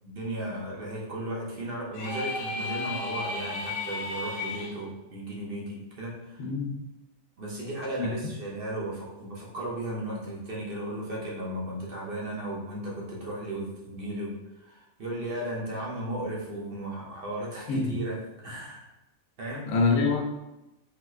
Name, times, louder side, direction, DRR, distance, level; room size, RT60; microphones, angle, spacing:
voice 1, 0.0-6.5 7.4-18.9 19.4-19.7, right 1 dB, 50° right, -4 dB, 0.8 m, -35 dB
sound 1, 1.9-4.7, left 3 dB, 60° left, 0.6 m, -33 dB
voice 2, 6.4-6.7 8.0-8.1 17.7-18.0 19.7-20.2, left 4 dB, 80° left, 2 dB, 1.0 m, -25 dB
4.1 x 2.1 x 2.3 m, 0.95 s
omnidirectional pair, 1.4 m